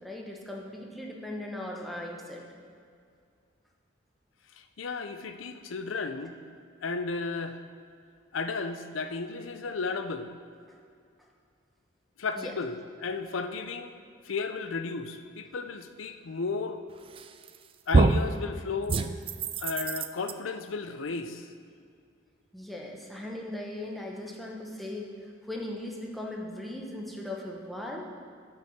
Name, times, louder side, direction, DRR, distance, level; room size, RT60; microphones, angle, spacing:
voice 1, 0.0-2.4 12.4-12.5 22.5-28.1, left 1 dB, ahead, -2 dB, 1.0 m, -38 dB
voice 2, 4.6-6.3 6.8-7.6 8.3-10.3 12.2-13.9 14.2-16.8 17.9-19.0 19.6-21.5, left 4 dB, 90° left, 9 dB, 0.6 m, -34 dB
sound 1, 17.2-17.6 17.9-18.3 18.9-20.3, right 3 dB, 30° right, 0.3 m, -25 dB
9.4 x 5.7 x 5.8 m, 2.2 s
head